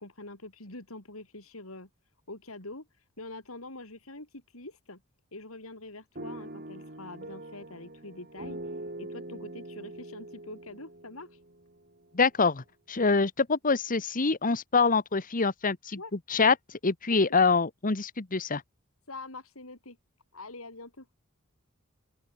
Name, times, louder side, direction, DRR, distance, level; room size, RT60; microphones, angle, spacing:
voice 1, 0.0-1.9 2.3-5.0 5.3-11.4 13.0-13.3 15.9-16.1 17.1-17.4 19.1-20.0 20.3-21.1, left 2 dB, 85° left, 6.5 m, -45 dB
sound 1, 6.2-12.2, right 1 dB, 45° right, 7.1 m, -43 dB
voice 2, 12.1-16.0 16.3-16.5 16.8-18.6, left 4 dB, 40° left, 1.3 m, -25 dB
open air
head